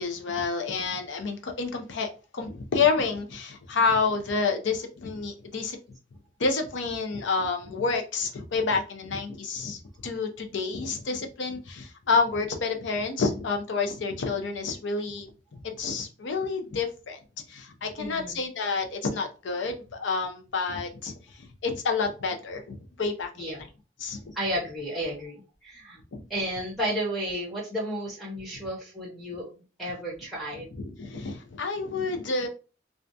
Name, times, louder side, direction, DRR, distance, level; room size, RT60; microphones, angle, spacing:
voice 1, 0.0-5.8 6.4-17.2 17.5-23.7 24.0-24.2 26.1-26.2 30.8-32.5, left 4 dB, 70° left, 0.5 m, -29 dB
voice 2, 18.0-18.4 23.4-23.6 24.3-26.0 26.3-29.5 29.8-30.7, equal, ahead, 0.7 m, -32 dB
2.4 x 2.2 x 2.6 m
head